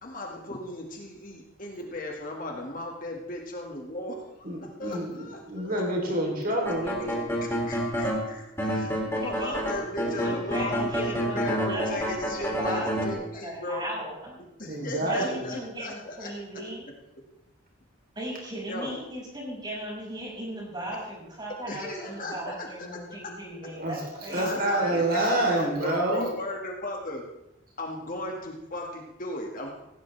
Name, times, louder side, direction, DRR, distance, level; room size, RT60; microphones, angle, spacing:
voice 1, 0.0-4.3 4.6-5.8 7.4-13.9 14.6-16.3 18.7-18.9 21.7-22.9 24.3-27.2 27.8-29.7, left 1 dB, 40° left, 1 dB, 2.0 m, -36 dB
voice 2, 4.4-7.3 14.7-15.5 23.8-24.0 24.3-26.2, right 1 dB, 45° right, -1 dB, 3.7 m, -28 dB
sound 1, 6.6-8.2 8.6-13.1, equal, 10° left, 3.0 m, -28 dB
voice 3, 9.2-9.6 10.0-14.4 15.0-16.8 18.1-24.9, right 1 dB, 20° right, -4 dB, 6.3 m, -37 dB
17.5 x 17.0 x 3.4 m, 0.90 s
head